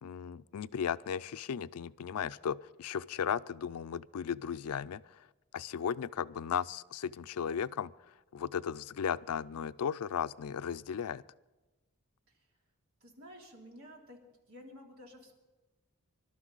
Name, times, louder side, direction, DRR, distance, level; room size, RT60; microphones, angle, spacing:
voice 1, 0.0-5.2 5.5-7.9 8.3-11.2, left 7 dB, 90° left, 16 dB, 0.4 m, -36 dB
voice 2, 13.0-14.2 14.5-15.4, equal, 70° right, 0 dB, 3.3 m, -52 dB
25.0 x 12.5 x 4.0 m, 1.1 s
head